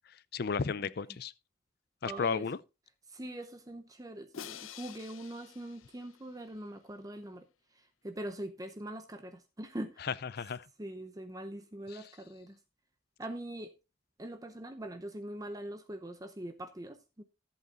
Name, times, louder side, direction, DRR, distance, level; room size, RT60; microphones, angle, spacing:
voice 1, 0.1-1.3 2.0-2.6 10.0-10.7 11.9-12.0, left 5 dB, 50° left, 0.5 m, -34 dB
voice 2, 2.1-2.5 3.1-7.5 7.7-10.1 10.8-12.6 13.2-13.7 14.2-17.2, right 1 dB, 20° right, 0.7 m, -42 dB
Crash cymbal, 4.3-6.6, left 8 dB, 90° left, 0.7 m, -48 dB
14.5 x 8.3 x 2.5 m
head